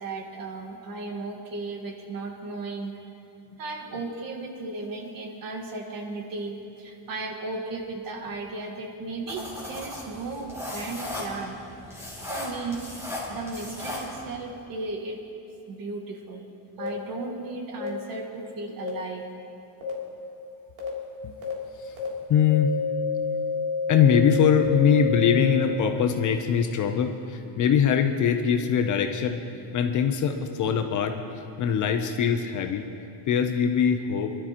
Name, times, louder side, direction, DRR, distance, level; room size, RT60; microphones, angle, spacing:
voice 1, 0.0-2.9 3.6-11.6 11.9-12.9 13.3-15.2 15.7-16.4 16.8-19.3, right 3 dB, 45° right, 3 dB, 1.6 m, -35 dB
sound 1, 9.3-14.3, left 1 dB, 5° right, 2.7 m, -36 dB
sound 2, 16.8-16.9 17.8-17.9 18.8-18.9 19.8-19.9 20.8-20.9 21.4-21.5 22.0-22.1 22.5-25.6, left 5 dB, 70° right, 3.1 m, -28 dB
voice 2, 22.3-22.7 23.9-29.4 29.7-31.2 31.6-32.9 33.3-34.3, left 7 dB, 40° left, 6 dB, 0.6 m, -22 dB
24.5 x 12.5 x 2.9 m, 2.7 s
cardioid pair, 170°, 48 cm